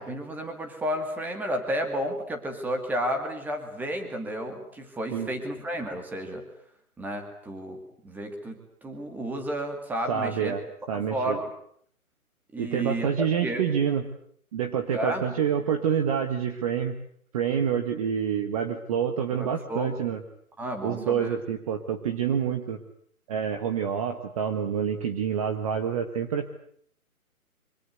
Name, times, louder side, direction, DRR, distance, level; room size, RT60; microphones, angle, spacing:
voice 1, 0.0-6.4 7.0-10.5 10.9-11.5 12.5-13.1 13.4-13.7 14.9-15.3 19.3-19.9 20.6-21.3, equal, 5° right, 5 dB, 2.3 m, -32 dB
voice 2, 10.1-10.6 10.9-11.4 12.6-14.1 14.5-17.0 17.3-20.2 20.8-22.8 23.3-26.5, right 8 dB, 25° right, 7 dB, 1.5 m, -27 dB
26.0 x 25.0 x 8.0 m, 0.63 s
hypercardioid pair, 155°, 44 cm